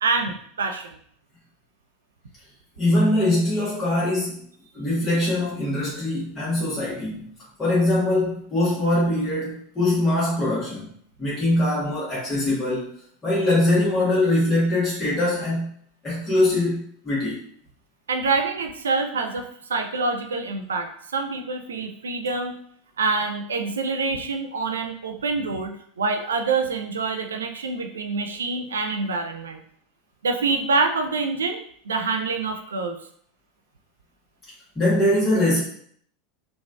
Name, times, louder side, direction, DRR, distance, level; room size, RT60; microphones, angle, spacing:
voice 1, 0.0-1.0 18.1-22.6 23.0-29.6 30.2-31.6 31.8-33.0, right 4 dB, 80° right, 5 dB, 0.4 m, -26 dB
voice 2, 2.8-4.4 4.7-7.3 7.6-10.9 11.2-12.9 13.2-15.7 16.0-17.4 34.7-35.6, left 1 dB, 20° left, -9 dB, 1.2 m, -22 dB
3.8 x 2.4 x 2.3 m, 0.62 s
hypercardioid pair, 85°, 0 cm